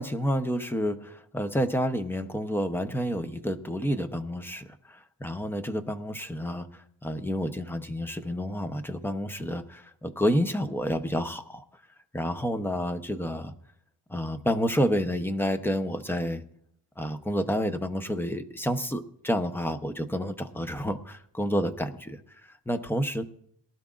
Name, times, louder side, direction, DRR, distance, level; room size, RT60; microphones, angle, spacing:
voice 1, 0.0-11.6 12.1-13.5 14.1-16.4 17.0-23.2, equal, 5° left, 8 dB, 0.8 m, -29 dB
22.5 x 12.0 x 2.5 m, 0.71 s
wide cardioid pair, 125°, 45 cm